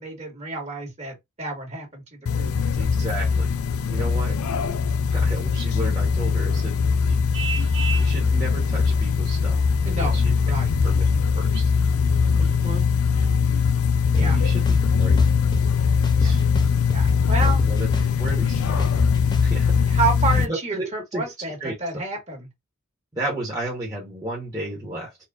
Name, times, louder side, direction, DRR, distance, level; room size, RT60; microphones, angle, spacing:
voice 1, 0.0-2.6 9.8-10.7 12.3-12.9 14.2-14.4 16.2-16.4 16.9-17.6 19.9-22.5, right 3 dB, 30° right, 1.8 m, -30 dB
sound 1, 2.3-20.5, left 5 dB, 90° left, 0.5 m, -21 dB
voice 2, 2.8-3.5 3.8-4.4 5.1-7.2 7.9-9.6 9.9-10.3 10.8-11.0 11.3-11.7 12.6-12.8 13.7-13.8 14.1-15.2 16.1-16.4 17.4-17.9 18.2-19.1 19.4-19.9 20.3-21.2 21.6-21.7 23.1-25.2, right 1 dB, 15° right, 1.4 m, -33 dB
Vehicle horn car horn honking, 7.3-8.2, right 7 dB, 65° right, 0.8 m, -30 dB
sound 2, 14.1-14.2 14.7-15.6 16.0-17.1 17.4-19.5, left 1 dB, 20° left, 0.6 m, -31 dB
4.2 x 3.1 x 2.6 m
head